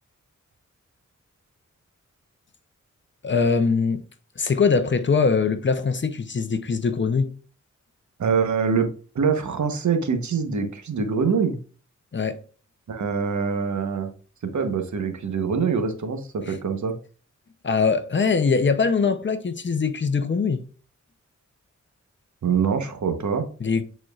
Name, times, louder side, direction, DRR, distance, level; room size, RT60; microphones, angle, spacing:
voice 1, 3.2-4.0 4.4-7.3 12.1-12.4 16.5-16.6 17.6-20.6 23.6-23.8, left 5 dB, 40° left, 0.7 m, -22 dB
voice 2, 8.2-8.9 9.1-11.6 12.9-14.1 14.4-16.9 22.4-23.4, right 5 dB, 75° right, 1.0 m, -24 dB
9.0 x 4.4 x 2.4 m
wide cardioid pair, 135°, 29 cm